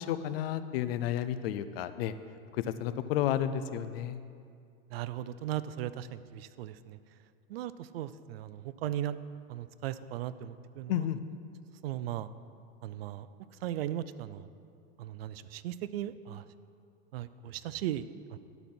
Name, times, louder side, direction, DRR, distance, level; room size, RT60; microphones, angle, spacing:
voice 1, 0.0-2.1 2.5-4.2 10.9-11.2, left 11 dB, 75° left, 12 dB, 0.5 m, -32 dB
voice 2, 4.9-7.0 7.5-9.2 9.5-11.1 11.8-12.3 12.8-13.3 13.6-14.5 15.0-16.4 17.1-18.4, right 12 dB, 85° right, 15 dB, 0.5 m, -37 dB
12.0 x 4.1 x 6.0 m, 2.3 s
supercardioid pair, 110°, 29 cm